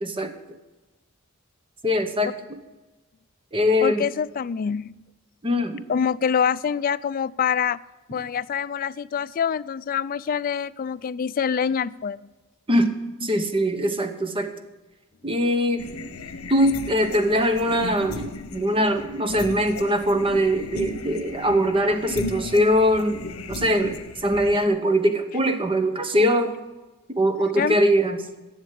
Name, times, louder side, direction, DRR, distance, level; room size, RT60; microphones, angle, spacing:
voice 1, 0.0-0.3 1.8-2.3 3.5-4.1 5.4-5.8 12.7-12.9 13.2-14.5 15.2-15.8 16.5-23.2 23.5-26.6 27.1-28.2, equal, 25° right, 8 dB, 0.9 m, -22 dB
voice 2, 3.8-4.9 5.9-7.8 8.1-12.2 27.6-27.8, left 7 dB, 40° left, 16 dB, 0.3 m, -25 dB
sound 1, 15.8-24.7, left 3 dB, 80° left, 0.9 m, -36 dB
11.0 x 7.3 x 8.4 m, 1.2 s
head